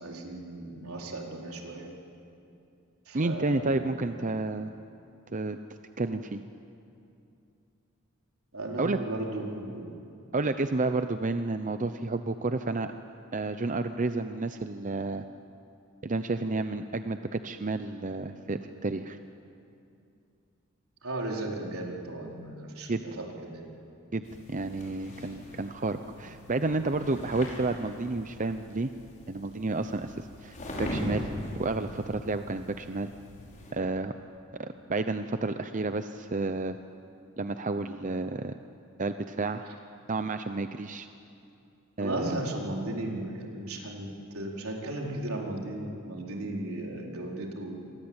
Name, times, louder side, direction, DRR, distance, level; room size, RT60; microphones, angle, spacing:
voice 1, 0.0-1.9 3.1-4.0 8.5-9.9 21.0-23.7 42.0-44.1 44.3-47.8, right 1 dB, 80° right, 0 dB, 4.4 m, -36 dB
voice 2, 3.1-4.7 5.3-5.6 6.0-6.4 8.8-9.0 10.3-12.9 13.3-15.2 16.0-19.2 22.9-23.0 24.1-24.2 24.5-28.9 29.3-31.3 31.6-33.1 33.7-34.1 34.5-36.8 37.4-38.5 39.0-39.6 40.1-41.1 42.0-42.4, right 3 dB, 35° right, 9 dB, 0.7 m, -31 dB
sound 1, 24.2-33.7, left 1 dB, 35° left, 6.2 m, -41 dB
28.5 x 23.0 x 8.9 m, 2.6 s
head